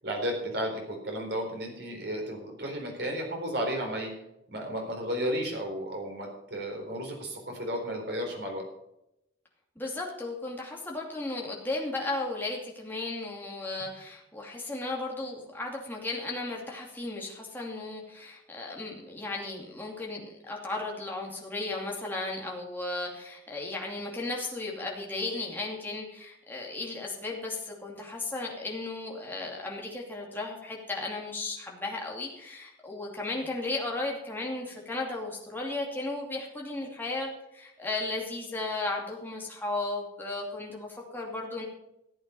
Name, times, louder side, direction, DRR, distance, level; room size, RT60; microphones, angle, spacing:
voice 1, 0.0-4.1 4.5-8.7, equal, 60° right, 1 dB, 4.1 m, -33 dB
voice 2, 9.8-41.6, left 2 dB, 10° left, -2 dB, 2.7 m, -35 dB
14.5 x 8.7 x 5.6 m, 0.84 s
head